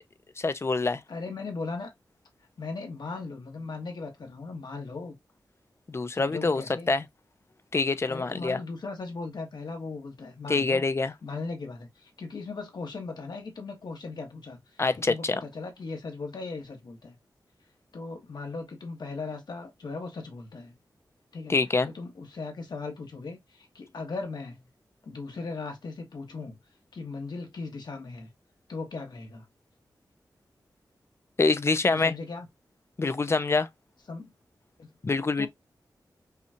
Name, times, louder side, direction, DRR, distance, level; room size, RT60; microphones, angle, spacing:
voice 1, 0.4-1.0 5.9-6.6 6.9-7.1 7.7-8.6 10.5-11.1 14.8-15.4 21.5-21.9 31.4-32.1 33.0-33.7 35.0-35.5, left 3 dB, 35° left, 0.5 m, -25 dB
voice 2, 1.1-1.9 2.6-5.1 6.1-6.9 8.1-10.8 11.2-14.6 15.0-17.2 17.9-20.7 21.3-21.5 21.8-24.7 25.1-26.6 26.9-28.3 28.7-29.4 31.9-32.5 34.1-34.3 34.8-34.9 35.4-35.5, left 3 dB, 70° left, 1.3 m, -38 dB
5.5 x 2.3 x 2.8 m
wide cardioid pair, 90°, 7 cm